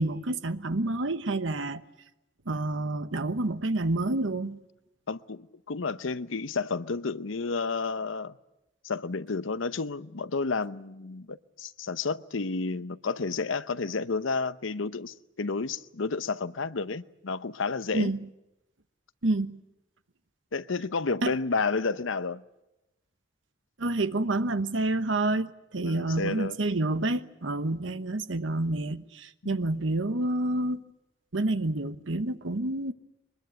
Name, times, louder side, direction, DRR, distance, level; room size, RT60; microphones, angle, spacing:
voice 1, 0.0-1.8 2.5-4.6 17.9-18.2 19.2-19.6 21.2-21.3 23.8-30.8 31.3-32.9, right 2 dB, 80° right, 1.1 m, -28 dB
voice 2, 5.1-8.4 8.8-18.1 20.5-22.4 25.8-26.6 29.4-29.8, left 4 dB, 85° left, 0.8 m, -31 dB
23.0 x 21.5 x 9.2 m
head